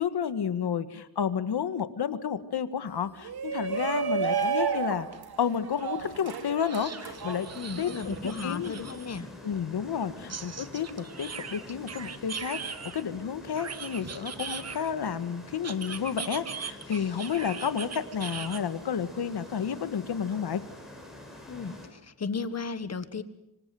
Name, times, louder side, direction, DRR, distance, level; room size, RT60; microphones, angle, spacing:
voice 1, 0.0-5.1 5.4-7.5 7.8-7.9 8.4-8.8 9.4-20.6, left 7 dB, 65° left, 12 dB, 1.8 m, -31 dB
Shout, 3.2-8.3, right 6 dB, 60° right, 3.0 m, -32 dB
sound 1, 5.1-5.2 5.6-5.7 6.6-9.2 10.3-13.0 13.5-15.1 15.6-18.6, right 6 dB, 40° right, 1.3 m, -40 dB
sound 2, 7.0-21.9, left 1 dB, ahead, 6.3 m, -47 dB
voice 2, 7.6-9.3 21.5-23.2, left 5 dB, 40° left, 13 dB, 1.5 m, -34 dB
26.0 x 26.0 x 7.8 m, 0.85 s
wide cardioid pair, 175°, 41 cm